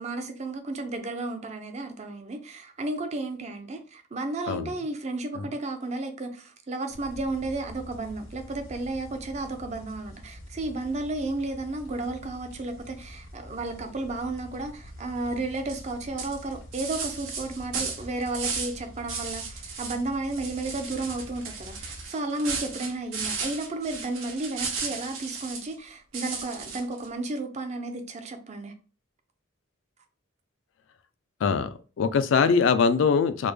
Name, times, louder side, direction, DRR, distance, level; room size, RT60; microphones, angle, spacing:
voice 1, 0.0-28.7, right 2 dB, 35° right, 0.4 m, -33 dB
sound 1, 6.9-22.1, equal, 90° left, 0.8 m, -46 dB
sound 2, 15.7-15.9 16.2-18.8 19.1-20.0 20.3-25.7 26.1-27.1, right 5 dB, 85° right, 0.8 m, -35 dB
voice 2, 32.0-33.5, left 5 dB, 65° left, 0.3 m, -22 dB
3.3 x 2.1 x 3.2 m
head